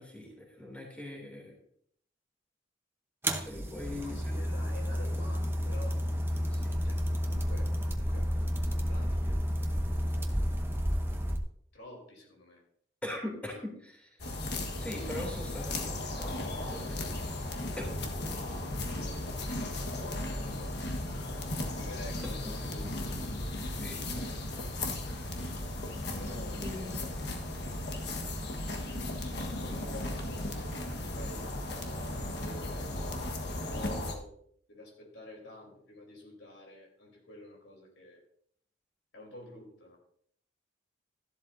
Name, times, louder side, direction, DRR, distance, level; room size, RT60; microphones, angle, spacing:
voice 1, 0.0-1.5 3.4-4.4 6.5-6.7 13.0-14.4 14.8-17.3 17.8-18.0 23.8-24.3 26.6-27.1, left 1 dB, 5° left, -1 dB, 3.0 m, -42 dB
sound 1, 3.2-11.4, equal, 10° right, 0.9 m, -31 dB
voice 2, 4.0-6.0 6.8-8.3 8.6-9.4 9.7-10.9 11.7-12.6 18.9-21.3 21.8-23.1 26.1-27.2 29.6-30.8 31.0-31.5 32.0-32.9 33.4-34.3 34.7-38.2 39.1-40.0, left 1 dB, 80° left, 0 dB, 3.6 m, -49 dB
sound 2, 14.2-34.1, left 1 dB, 60° left, 1.4 m, -36 dB
13.5 x 11.5 x 2.7 m, 0.65 s
head